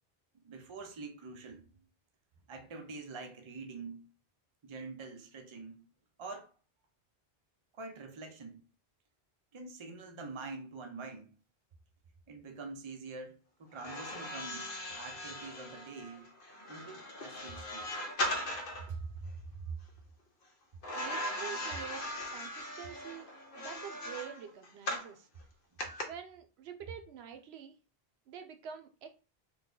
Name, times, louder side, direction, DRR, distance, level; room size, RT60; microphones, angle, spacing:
voice 1, 0.4-1.6 2.5-4.1 4.6-5.8 6.2-6.5 7.8-8.6 9.5-11.3 12.3-16.3 16.7-17.9 18.9-19.8, right 4 dB, 40° right, 0.5 m, -45 dB
sound 1, 13.7-18.9 20.8-25.1 25.8-26.0, left 1 dB, 60° left, 0.8 m, -39 dB
voice 2, 20.9-22.0 22.3-25.3 26.0-27.8 28.3-29.1, right 8 dB, 80° right, 0.8 m, -46 dB
3.2 x 2.2 x 3.7 m
omnidirectional pair, 1.1 m